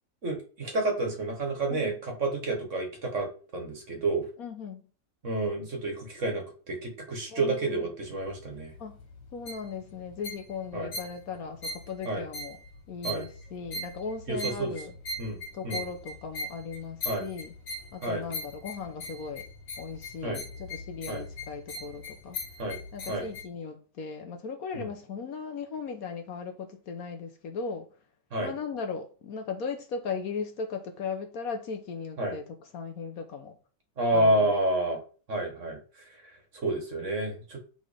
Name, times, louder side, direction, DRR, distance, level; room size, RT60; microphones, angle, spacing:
voice 1, 0.2-4.3 5.2-8.7 10.7-10.9 12.0-12.2 13.0-13.2 14.3-14.8 15.2-15.8 17.1-17.3 18.0-18.2 20.2-20.4 21.1-21.2 22.6-22.8 23.1-23.3 24.7-24.9 28.3-28.5 32.2-32.4 34.0-35.0 35.3-37.6, right 2 dB, 45° right, 1.8 m, -30 dB
voice 2, 4.4-4.8 7.3-7.8 8.8-9.0 9.3-12.6 12.9-14.9 15.5-17.5 17.9-19.5 19.8-22.4 22.9-27.9 28.4-32.4 32.7-33.5 34.1-34.6, left 5 dB, 60° left, 1.2 m, -37 dB
sound 1, 8.0-23.4, left 1 dB, 85° left, 2.2 m, -41 dB
6.9 x 3.9 x 5.0 m
omnidirectional pair, 1.8 m